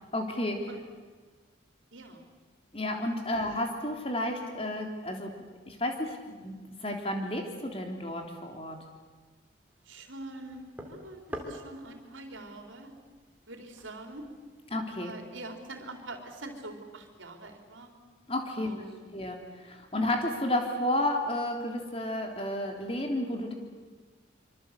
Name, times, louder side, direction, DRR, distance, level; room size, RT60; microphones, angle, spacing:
voice 1, 0.1-0.7 2.7-5.3 5.7-6.6 6.8-8.8 14.7-15.1 18.3-18.7 19.1-23.5, left 1 dB, 30° left, 3 dB, 3.3 m, -31 dB
voice 2, 1.9-2.3 3.3-3.4 9.9-12.9 13.5-14.3 15.0-17.9 18.6-19.1, right 2 dB, 85° right, 4 dB, 3.9 m, -44 dB
sound 1, 9.6-14.7, equal, 10° right, 3.0 m, -47 dB
25.5 x 25.0 x 8.3 m, 1.4 s
head